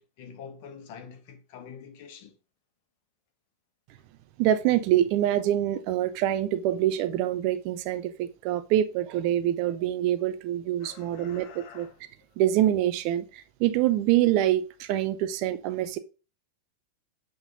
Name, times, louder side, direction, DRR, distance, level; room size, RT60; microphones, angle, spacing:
voice 1, 0.0-2.4 10.8-12.0, left 7 dB, 45° left, 1.6 m, -46 dB
voice 2, 4.4-11.9 12.4-16.0, right 12 dB, 45° right, 0.7 m, -25 dB
8.2 x 3.9 x 4.0 m
figure-of-eight pair, 90°, 0 cm